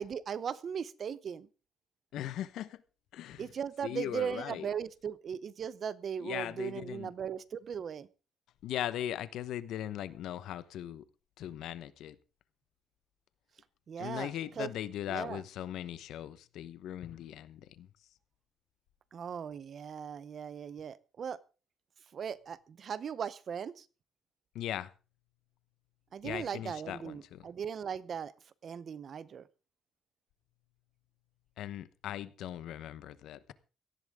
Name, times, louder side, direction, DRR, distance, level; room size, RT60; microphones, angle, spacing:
voice 1, 0.0-1.5 3.4-8.1 13.9-14.7 15.1-15.4 19.1-21.4 22.1-23.9 26.1-28.3 28.6-29.5, right 7 dB, 35° right, 0.7 m, -38 dB
voice 2, 2.1-2.8 3.1-3.5 3.8-4.7 6.2-7.1 8.6-11.0 11.4-12.2 14.0-17.9 24.5-24.9 26.2-27.5 31.6-33.5, left 11 dB, 75° left, 1.0 m, -39 dB
17.5 x 14.5 x 3.7 m
cardioid pair, 180°, 0 cm